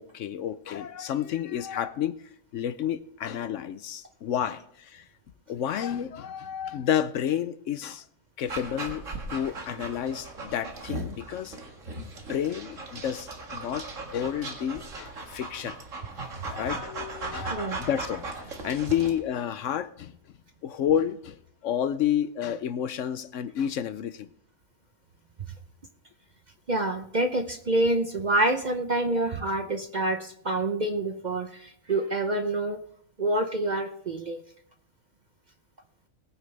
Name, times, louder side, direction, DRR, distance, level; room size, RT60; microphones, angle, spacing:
voice 1, 0.0-2.2 2.5-5.1 5.5-8.0 8.4-9.0 9.3-11.6 12.0-15.8 16.5-20.1 20.6-21.4 21.6-24.3, left 9 dB, 70° left, 0.9 m, -30 dB
Dog, 8.5-19.2, right 2 dB, 65° right, 2.1 m, -38 dB
voice 2, 26.7-32.8 33.2-34.4, right 2 dB, 45° right, 0.7 m, -27 dB
21.0 x 9.2 x 3.3 m
omnidirectional pair, 1.4 m